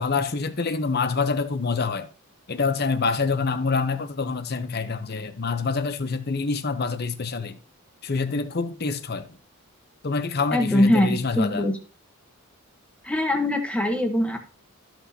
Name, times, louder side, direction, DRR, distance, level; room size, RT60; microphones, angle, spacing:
voice 1, 0.0-2.1 2.5-7.6 8.0-9.4 10.0-11.7, left 4 dB, 45° left, 0.8 m, -26 dB
voice 2, 10.5-11.8 13.0-14.4, left 1 dB, 5° left, 1.1 m, -22 dB
13.0 x 5.9 x 2.8 m
head